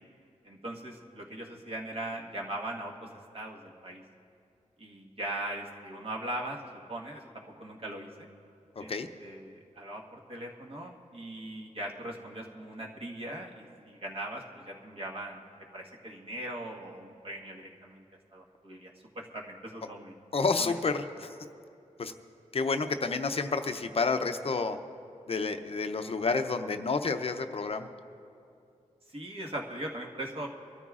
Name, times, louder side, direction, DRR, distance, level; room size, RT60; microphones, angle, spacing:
voice 1, 0.4-3.1 3.3-4.0 4.8-6.6 6.9-7.2 7.6-8.3 8.8-8.9 9.2-15.4 15.7-18.0 18.3-20.1 20.6-20.7 29.1-30.5, right 1 dB, 45° right, -1 dB, 1.5 m, -40 dB
voice 2, 8.8-9.1 20.3-21.3 22.0-22.1 22.5-24.8 25.3-27.9, left 4 dB, 50° left, 7 dB, 0.6 m, -30 dB
24.0 x 13.5 x 2.4 m, 2.5 s
wide cardioid pair, 125°, 13 cm